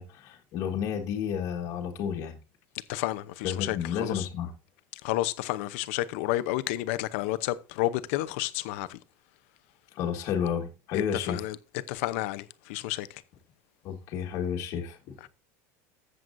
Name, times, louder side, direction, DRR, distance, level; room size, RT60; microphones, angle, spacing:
voice 1, 0.0-2.4 3.4-4.5 9.9-11.4 13.8-15.1, left 8 dB, 45° left, 1.6 m, -31 dB
voice 2, 2.9-4.3 4.9-9.0 11.1-11.6 11.9-13.2 15.2-15.3, left 16 dB, 65° left, 0.8 m, -31 dB
14.0 x 7.8 x 2.6 m
cardioid pair, 170°, 8 cm